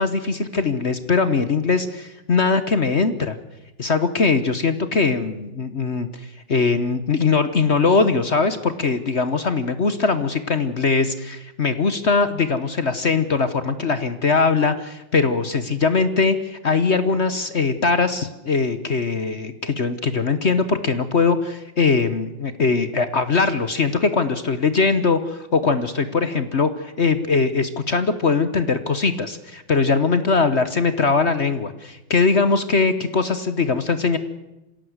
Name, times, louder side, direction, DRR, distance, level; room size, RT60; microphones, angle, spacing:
voice 1, 0.0-3.4 3.8-34.2, left 4 dB, 40° left, 12 dB, 1.1 m, -21 dB
26.0 x 17.0 x 8.0 m, 0.99 s
omnidirectional pair, 2.2 m